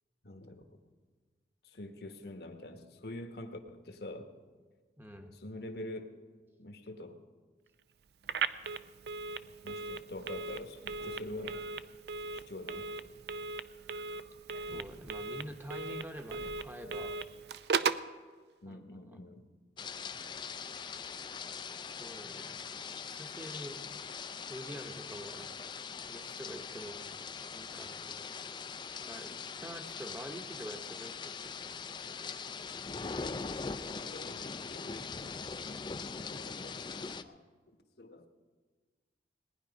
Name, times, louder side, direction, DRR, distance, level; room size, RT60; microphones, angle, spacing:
voice 1, 0.2-0.6 1.6-4.3 5.3-6.1 6.6-7.2 9.4-11.6 12.3-12.9 18.6-19.5 33.4-35.4 36.3-37.4 38.0-38.3, left 1 dB, 60° left, 6 dB, 1.3 m, -46 dB
voice 2, 5.0-5.3 14.7-17.2 18.6-18.8 21.9-22.6 23.0-23.8 24.5-25.7 26.1-27.0 27.5-28.6 29.0-32.3, equal, 10° right, 4 dB, 0.9 m, -47 dB
Telephone, 8.2-18.1, right 5 dB, 65° right, 0.5 m, -37 dB
sound 1, 19.8-37.2, left 5 dB, 25° left, 0.4 m, -42 dB
18.5 x 10.5 x 5.2 m, 1.4 s
head